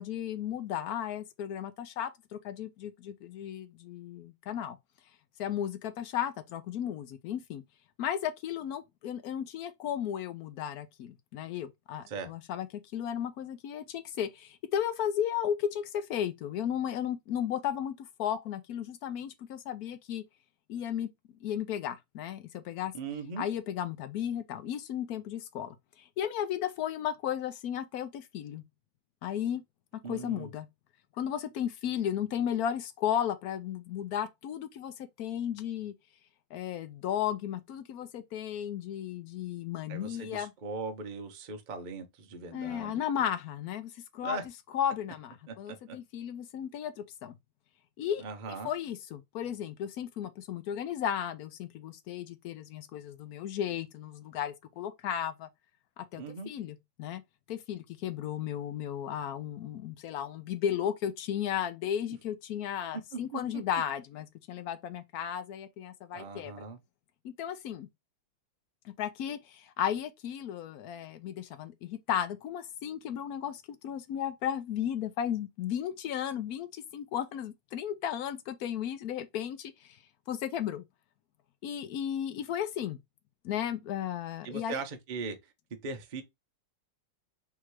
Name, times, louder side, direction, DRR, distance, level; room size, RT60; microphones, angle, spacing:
voice 1, 0.0-4.8 5.4-7.6 8.0-12.7 12.9-20.2 20.7-21.1 21.4-22.9 23.4-28.6 29.2-29.6 30.1-30.7 31.2-35.9 36.5-40.5 42.5-44.4 44.7-47.4 48.0-48.2 48.6-55.5 56.0-57.2 57.5-66.6 67.2-67.9 68.8-80.0 80.3-80.8 81.6-83.0 83.4-84.8, left 9 dB, 75° left, 0.9 m, -34 dB
voice 2, 22.9-23.4 30.0-30.5 39.9-43.0 44.2-44.5 45.5-46.0 48.2-48.7 56.1-56.5 63.3-63.6 66.1-66.8 84.4-85.5 85.8-86.2, right 4 dB, 65° right, 0.4 m, -39 dB
3.6 x 2.8 x 4.5 m
omnidirectional pair, 2.0 m